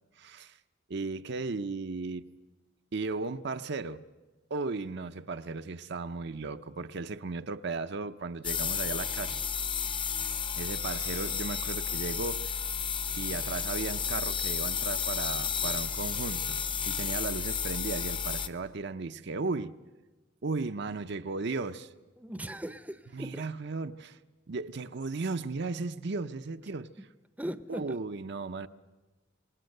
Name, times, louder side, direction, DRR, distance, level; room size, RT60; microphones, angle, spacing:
voice 1, 0.2-0.6 0.9-2.3 2.9-4.0 4.5-9.3 10.6-12.5 13.2-16.6 16.9-19.7 20.4-21.9 23.1-24.2 24.5-26.9 27.7-28.7, right 3 dB, 60° right, 0.7 m, -35 dB
sound 1, 8.4-18.5, left 6 dB, 25° left, 0.8 m, -32 dB
voice 2, 22.2-23.4 27.4-27.8, right 1 dB, 10° right, 0.7 m, -38 dB
26.5 x 20.0 x 6.6 m
head